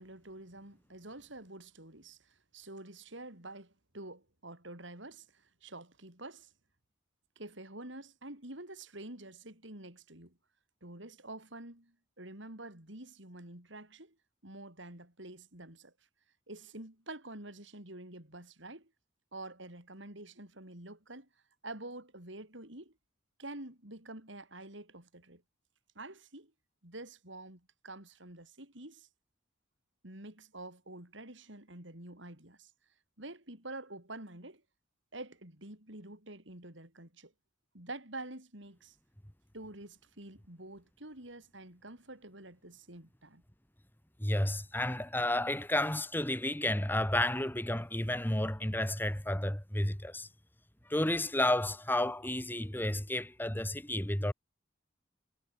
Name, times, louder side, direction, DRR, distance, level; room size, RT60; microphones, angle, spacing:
voice 1, 0.0-6.5 7.4-10.4 10.8-14.2 14.4-15.9 16.5-18.9 19.3-21.3 21.6-22.9 23.4-25.4 25.9-26.5 26.8-29.1 30.0-32.7 33.2-34.6 35.1-37.3 37.7-39.0 39.5-43.4, right 2 dB, 65° right, 6.3 m, -48 dB
voice 2, 44.2-50.3 50.9-54.3, left 1 dB, 10° left, 2.1 m, -31 dB
head